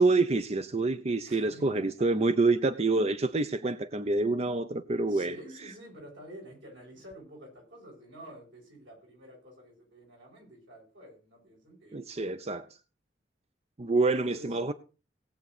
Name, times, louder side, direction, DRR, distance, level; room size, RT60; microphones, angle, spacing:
voice 1, 0.0-5.3 11.9-12.7 13.8-14.7, right 3 dB, 35° right, 11 dB, 0.6 m, -27 dB
voice 2, 1.2-2.3 5.1-12.3 14.0-14.6, equal, 90° right, -1 dB, 8.0 m, -49 dB
18.5 x 8.2 x 4.2 m, 0.35 s
head